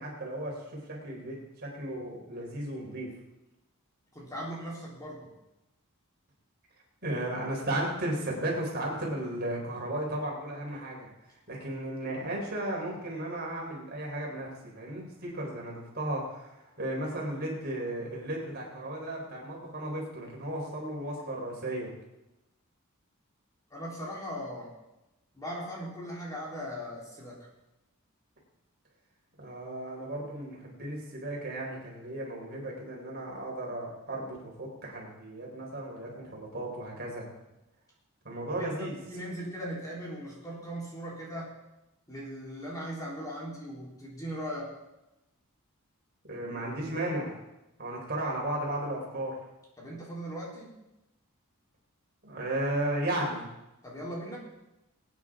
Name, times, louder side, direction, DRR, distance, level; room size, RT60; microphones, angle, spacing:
voice 1, 0.0-3.1 7.0-11.1 11.5-21.9 29.4-37.2 38.2-39.0 46.3-47.4 47.8-49.4 52.2-53.4, right 1 dB, 45° right, -2 dB, 4.0 m, -35 dB
voice 2, 4.1-5.3 23.7-24.8 25.3-27.5 38.6-41.6 42.1-44.7 49.8-50.7 53.8-54.4, equal, 15° left, -4 dB, 3.6 m, -39 dB
23.0 x 9.4 x 3.7 m, 0.95 s
head